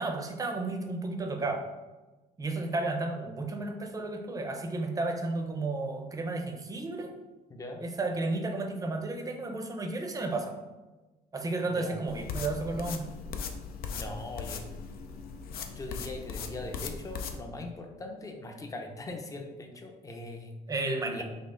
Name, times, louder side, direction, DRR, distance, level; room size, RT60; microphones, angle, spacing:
voice 1, 0.0-1.6 2.4-7.1 7.8-10.5 11.3-13.0 20.7-21.2, right 2 dB, 20° right, 3 dB, 0.6 m, -32 dB
voice 2, 7.5-7.8 11.6-12.0 13.9-14.6 15.7-20.5 21.0-21.2, left 2 dB, 20° left, 3 dB, 0.6 m, -41 dB
sound 1, 12.1-17.4, left 5 dB, 60° left, 0.5 m, -39 dB
5.2 x 2.0 x 3.8 m, 1.1 s
cardioid pair, 110°, 17 cm